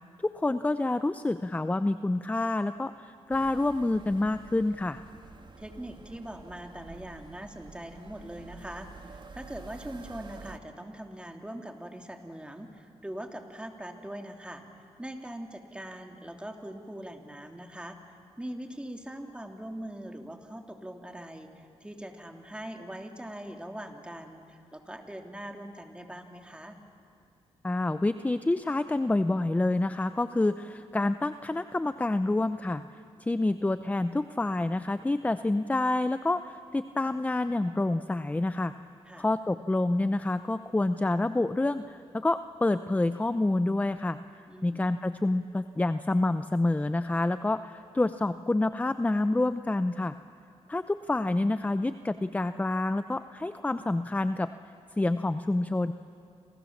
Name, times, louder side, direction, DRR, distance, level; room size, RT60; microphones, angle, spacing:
voice 1, 0.2-5.0 27.6-32.8 33.2-38.7 39.2-44.2 44.6-50.1 50.7-54.5 55.0-55.9, left 2 dB, 15° left, 12 dB, 0.6 m, -28 dB
sound 1, 3.3-10.6, right 4 dB, 45° right, 1.6 m, -49 dB
voice 2, 5.6-18.0 18.4-26.8 39.1-39.3 44.5-44.8, right 1 dB, 10° right, 4 dB, 2.9 m, -42 dB
29.0 x 27.5 x 7.3 m, 2.4 s
cardioid pair, 80°, 11 cm